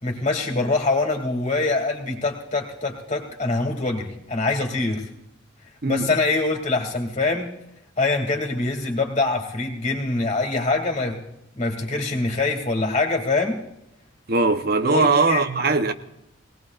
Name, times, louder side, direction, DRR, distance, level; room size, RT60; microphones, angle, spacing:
voice 1, 0.0-5.1 5.8-7.5 8.0-11.2 11.5-13.6 14.8-15.4, left 3 dB, 35° left, 2.4 m, -24 dB
voice 2, 14.3-15.9, right 3 dB, 50° right, 0.8 m, -20 dB
21.5 x 18.5 x 2.4 m
head